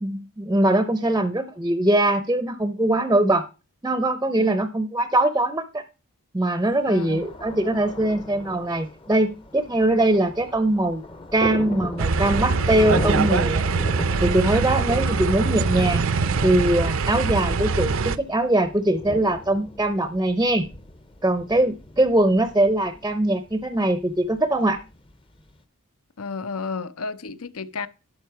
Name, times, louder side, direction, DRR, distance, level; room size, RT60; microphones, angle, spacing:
voice 1, 0.0-3.5 3.8-5.8 6.3-11.0 11.3-13.6 14.2-16.0 16.4-20.7 21.2-24.8, right 1 dB, 15° right, 0.5 m, -22 dB
Thunder, 6.6-25.6, left 2 dB, 25° left, 0.7 m, -37 dB
voice 2, 6.9-7.3 26.2-27.9, left 4 dB, 75° left, 0.7 m, -32 dB
sound 1, 12.0-18.2, right 4 dB, 65° right, 0.5 m, -23 dB
11.5 x 6.6 x 4.6 m
head